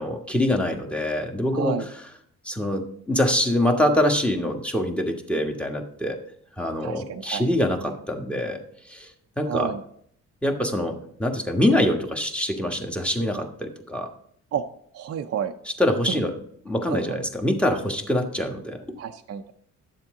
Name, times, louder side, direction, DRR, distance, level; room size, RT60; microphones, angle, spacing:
voice 1, 0.0-1.8 2.4-6.2 6.6-8.6 8.9-9.1 9.4-9.7 10.4-14.1 15.8-16.4 16.6-18.8, left 1 dB, 5° left, 3 dB, 1.5 m, -24 dB
voice 2, 1.5-1.9 6.8-7.5 7.9-8.0 9.5-9.8 14.5-14.6 14.9-15.5 16.1-16.2 16.9-17.2 19.0-19.5, right 9 dB, 50° right, 5 dB, 0.6 m, -30 dB
11.0 x 7.4 x 3.8 m, 0.65 s
cardioid pair, 90°, 30 cm